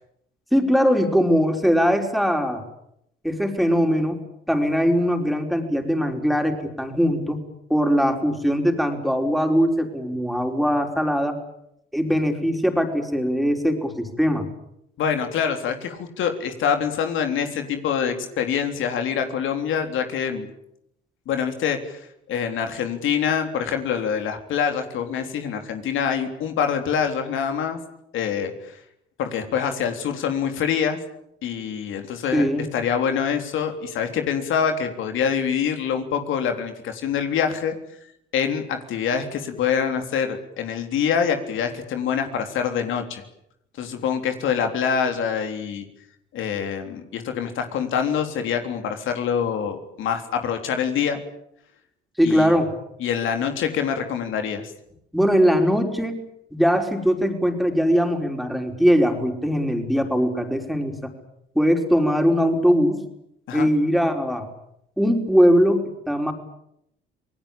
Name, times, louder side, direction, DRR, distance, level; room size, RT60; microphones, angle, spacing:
voice 1, 0.5-2.6 3.2-4.2 4.5-7.4 7.7-11.4 11.9-14.4 32.3-32.7 52.2-52.7 55.1-56.2 56.5-61.1 61.5-63.0 63.5-64.5 65.0-66.3, equal, ahead, 4 dB, 5.1 m, -21 dB
voice 2, 15.0-20.5 21.3-27.8 28.1-28.8 29.2-31.0 31.4-37.7 38.3-43.2 43.8-45.8 46.3-51.2 52.2-52.5 53.0-54.7 63.5-63.7, left 7 dB, 70° left, 6 dB, 3.6 m, -25 dB
27.5 x 19.5 x 8.9 m, 0.76 s
supercardioid pair, 80°, 21 cm